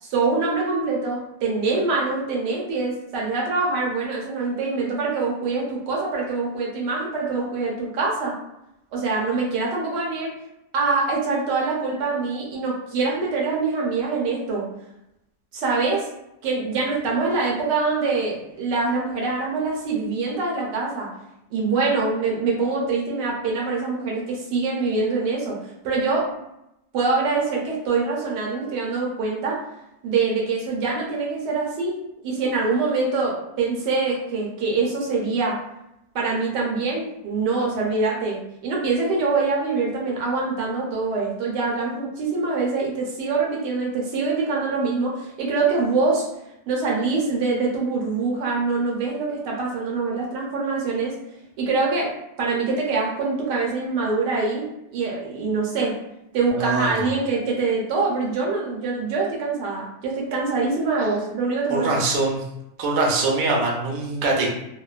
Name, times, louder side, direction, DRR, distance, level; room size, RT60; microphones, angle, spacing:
voice 1, 0.0-8.4 8.9-10.3 10.7-14.7 15.5-16.1 16.4-21.1 21.5-26.3 26.9-29.6 30.0-31.9 32.2-35.6 36.1-46.3 46.7-51.2 51.6-52.1 52.4-54.7 54.9-56.0 56.3-61.9, right 4 dB, 80° right, -2 dB, 1.3 m, -24 dB
voice 2, 56.5-57.0 61.7-62.4 62.8-64.5, right 2 dB, 65° right, -2 dB, 0.9 m, -23 dB
2.9 x 2.1 x 2.3 m, 0.85 s
omnidirectional pair, 1.8 m